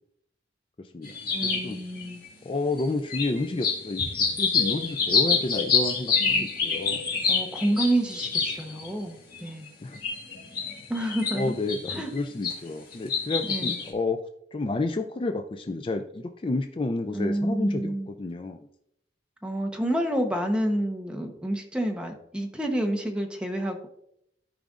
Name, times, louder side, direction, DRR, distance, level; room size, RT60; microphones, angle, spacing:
voice 1, 0.8-1.1 1.4-1.8 2.4-4.1 4.4-7.0 9.8-10.0 11.3-18.7, left 2 dB, 30° left, 6 dB, 0.4 m, -30 dB
sound 1, 1.0-2.3 2.8-8.9 9.3-9.7 9.9-12.5 12.9-13.9, left 5 dB, 55° left, 1.8 m, -27 dB
voice 2, 1.3-2.2 6.2-6.5 7.3-9.7 10.9-11.6 11.9-12.1 13.5-13.8 17.1-18.1 19.4-23.9, right 1 dB, 5° right, 3 dB, 0.9 m, -29 dB
13.5 x 5.0 x 2.5 m, 0.74 s
head